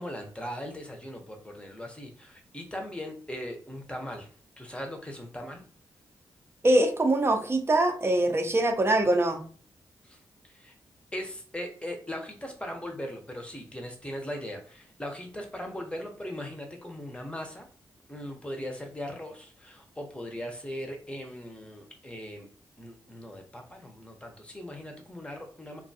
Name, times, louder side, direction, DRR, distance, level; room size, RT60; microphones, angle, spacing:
voice 1, 0.0-4.3 4.6-5.6 10.0-10.2 10.4-10.7 11.1-17.7 18.1-22.5 22.8-25.8, equal, 15° left, 2 dB, 0.7 m, -39 dB
voice 2, 6.6-9.4, right 1 dB, 30° right, 4 dB, 0.6 m, -23 dB
2.5 x 2.3 x 2.7 m, 0.42 s
cardioid pair, 60°, 8 cm